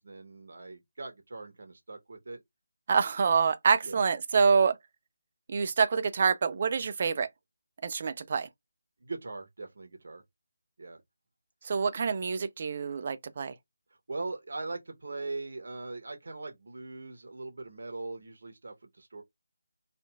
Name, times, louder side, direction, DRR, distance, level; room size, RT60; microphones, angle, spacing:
voice 1, 0.0-2.4 3.8-4.1 9.0-10.2 10.8-11.0 14.1-19.2, right 3 dB, 60° right, 0.8 m, -40 dB
voice 2, 2.9-4.8 5.5-7.3 7.8-8.5 11.6-13.5, right 5 dB, 40° right, 0.4 m, -26 dB
2.8 x 2.4 x 2.2 m
figure-of-eight pair, 160°, 0 cm